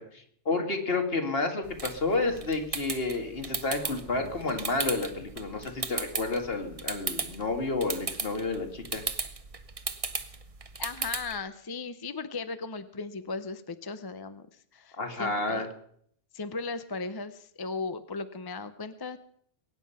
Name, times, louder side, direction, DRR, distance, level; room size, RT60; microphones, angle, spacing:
voice 1, 0.0-9.0 15.0-15.7, left 3 dB, 50° left, 5 dB, 2.1 m, -30 dB
sound 1, 1.6-11.4, right 4 dB, 30° right, 0.9 m, -37 dB
voice 2, 10.8-14.5 14.7-15.7 16.3-19.2, left 4 dB, 25° left, 11 dB, 0.5 m, -37 dB
22.0 x 9.5 x 5.6 m, 0.66 s
omnidirectional pair, 1.3 m